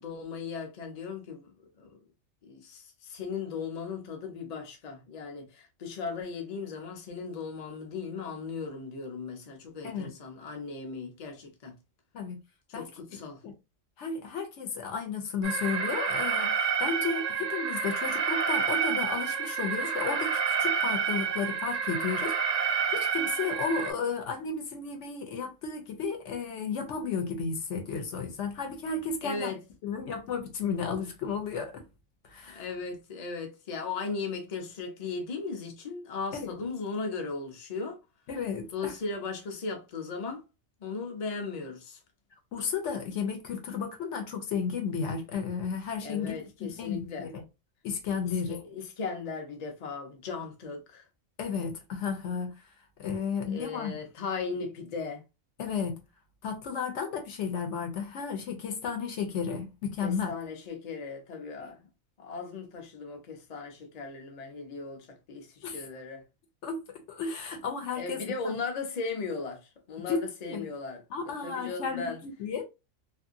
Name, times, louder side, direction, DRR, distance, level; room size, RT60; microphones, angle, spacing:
voice 1, 0.0-2.0 2.4-11.8 12.7-13.4 29.2-29.6 32.5-38.0 38.7-40.4 40.8-42.0 46.0-47.3 48.2-51.0 53.4-55.2 60.0-61.9 62.2-66.2 68.0-72.2, left 4 dB, 40° left, 0.6 m, -37 dB
voice 2, 12.7-13.5 14.0-29.5 29.8-31.8 32.2-32.7 36.3-36.5 38.3-38.9 42.5-47.4 47.8-48.6 51.4-52.5 53.0-53.9 55.6-56.0 56.4-60.3 61.6-61.7 65.6-65.8 66.6-68.6 70.0-70.7 71.1-72.6, left 5 dB, 65° left, 0.9 m, -33 dB
Alarm, 15.4-23.9, right 6 dB, 45° right, 0.6 m, -29 dB
2.6 x 2.5 x 2.5 m
omnidirectional pair, 1.4 m